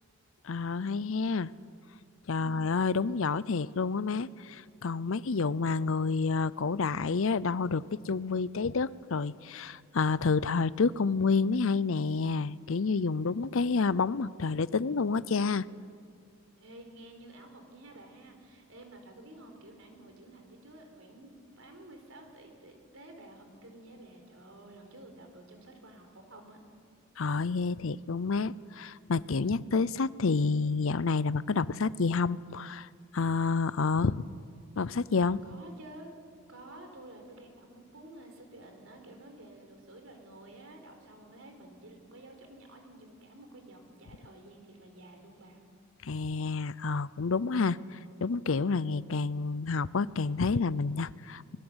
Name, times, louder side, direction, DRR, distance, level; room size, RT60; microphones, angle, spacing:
voice 1, 0.4-1.5 2.3-15.7 27.2-32.9 33.1-34.2 34.8-35.4 46.0-51.6, left 4 dB, 65° left, 19 dB, 0.6 m, -29 dB
voice 2, 2.3-2.6 16.6-26.6 35.4-36.1 36.5-45.6, right 1 dB, 70° right, 4 dB, 4.4 m, -51 dB
24.5 x 21.0 x 8.1 m, 2.2 s
head